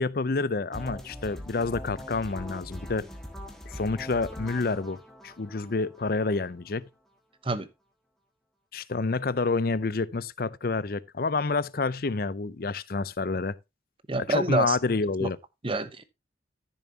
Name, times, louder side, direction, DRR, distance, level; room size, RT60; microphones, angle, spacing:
voice 1, 0.0-3.1 3.7-6.9 8.7-13.6 14.3-15.4, left 3 dB, 50° left, 0.6 m, -28 dB
sound 1, 0.7-6.7, equal, ahead, 1.7 m, -42 dB
voice 2, 14.1-14.8 15.2-15.3 15.6-16.0, right 2 dB, 30° right, 0.8 m, -27 dB
14.0 x 7.0 x 2.8 m
head